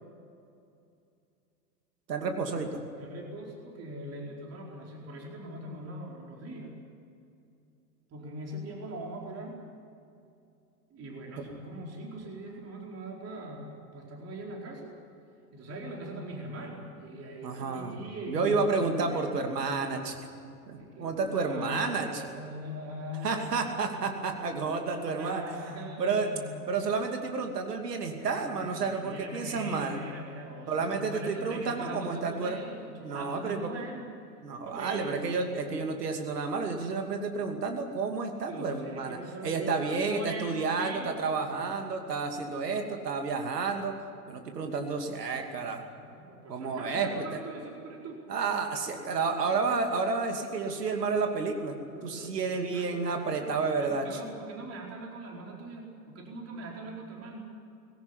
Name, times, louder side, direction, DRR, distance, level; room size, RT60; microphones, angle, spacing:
voice 1, 2.1-2.8 11.4-11.5 17.4-18.0 18.3-20.2 20.7-22.2 23.2-25.4 26.0-26.3 26.7-30.0 30.7-32.6 33.0-33.7 34.4-39.2 39.4-43.9 44.3-45.8 46.5-47.4 48.3-51.8 52.0-54.2, right 4 dB, 80° right, 4 dB, 2.6 m, -30 dB
voice 2, 3.0-6.7 8.1-9.6 10.9-14.9 15.5-18.6 19.1-19.3 20.7-23.6 24.7-26.7 28.2-34.1 34.6-35.2 35.5-35.8 38.5-41.4 46.0-48.2 51.9-57.5, right 1 dB, 30° right, -1 dB, 4.5 m, -41 dB
20.0 x 17.5 x 9.8 m, 2.5 s
figure-of-eight pair, 90°, 47 cm